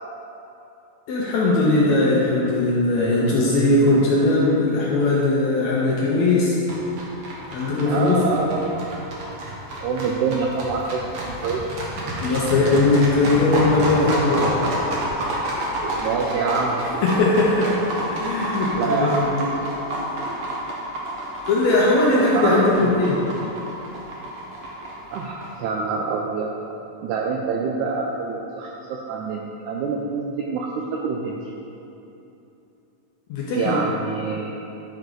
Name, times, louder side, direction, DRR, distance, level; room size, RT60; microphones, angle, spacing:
voice 1, 1.1-6.6 7.5-8.2 12.2-14.5 17.0-17.7 18.1-19.5 21.5-23.2 33.3-33.8, left 2 dB, 70° left, -5 dB, 1.8 m, -19 dB
sound 1, 6.7-25.5, right 1 dB, 65° right, 1.5 m, -29 dB
voice 2, 7.9-9.0 9.8-11.1 11.4-11.6 12.2-12.4 15.9-16.8 18.7-19.2 22.3-23.0 25.1-26.5 27.0-31.3 33.5-34.6, right 4 dB, 85° right, -1 dB, 1.7 m, -26 dB
10.0 x 4.6 x 3.8 m, 3.0 s
omnidirectional pair, 3.9 m